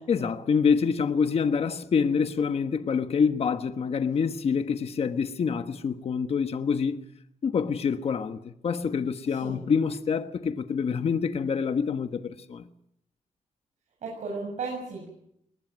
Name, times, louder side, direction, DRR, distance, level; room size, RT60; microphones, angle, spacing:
voice 1, 0.1-7.0 7.4-12.6, left 6 dB, 55° left, 1.4 m, -26 dB
voice 2, 9.3-9.6 14.0-15.1, right 4 dB, 75° right, 7.6 m, -35 dB
21.5 x 20.0 x 9.4 m
cardioid pair, 110°, 12 cm